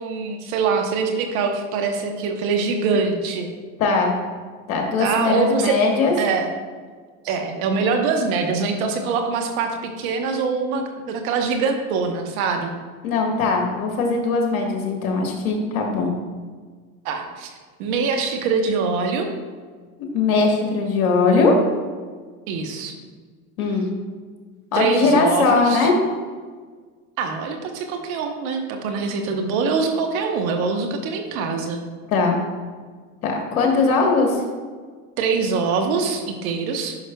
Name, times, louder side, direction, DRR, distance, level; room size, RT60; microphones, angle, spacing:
voice 1, 0.0-3.5 5.0-5.8 6.2-6.5 7.2-12.7 17.0-17.5 17.8-19.3 22.5-23.0 24.7-25.9 27.2-31.8 35.2-37.0, right 4 dB, 70° right, 5 dB, 1.1 m, -23 dB
voice 2, 3.8-4.1 4.7-6.1 13.0-16.1 20.1-21.5 23.6-23.9 24.7-25.9 32.1-32.4 33.2-34.4, left 4 dB, 85° left, 1 dB, 1.3 m, -20 dB
11.0 x 5.8 x 2.3 m, 1.5 s
hypercardioid pair, 90°, 43 cm